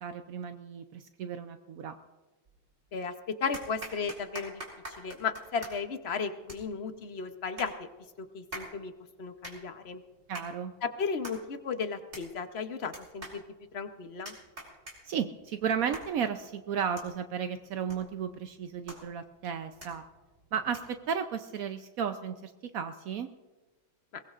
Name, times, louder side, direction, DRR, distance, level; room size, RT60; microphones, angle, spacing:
voice 1, 0.0-2.0 10.3-10.7 15.1-20.0 20.5-23.3, right 7 dB, 80° right, 8 dB, 0.8 m, -34 dB
sound 1, 2.5-3.0 3.5-21.1, right 1 dB, 30° right, 4.0 m, -48 dB
voice 2, 3.4-4.6 5.0-7.9 8.2-8.9 9.2-10.0 10.8-13.4 13.7-14.4 24.1-24.2, left 5 dB, 60° left, 7 dB, 0.6 m, -35 dB
22.5 x 19.0 x 2.5 m, 1.2 s
omnidirectional pair, 2.2 m